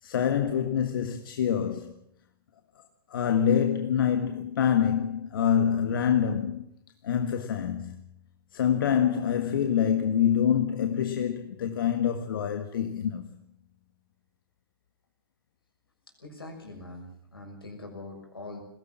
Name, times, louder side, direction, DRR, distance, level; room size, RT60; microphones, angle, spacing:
voice 1, 0.0-1.9 3.1-6.7 7.0-7.9 8.5-13.3, left 8 dB, 65° left, 1.6 m, -26 dB
voice 2, 16.2-18.6, left 2 dB, 85° left, 6.7 m, -43 dB
21.0 x 17.0 x 7.6 m
figure-of-eight pair, 105°, 12 cm